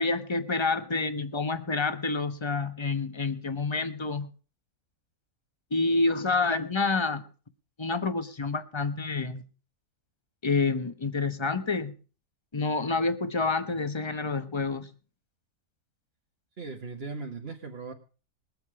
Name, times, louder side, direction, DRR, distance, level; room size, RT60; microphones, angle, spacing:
voice 1, 0.0-4.3 5.7-7.2 7.8-9.4 10.4-11.9 12.5-14.9, left 3 dB, 20° left, 10 dB, 1.0 m, -28 dB
voice 2, 16.6-17.9, right 4 dB, 45° right, 0 dB, 1.6 m, -38 dB
21.5 x 8.1 x 4.8 m, 0.36 s
omnidirectional pair, 1.6 m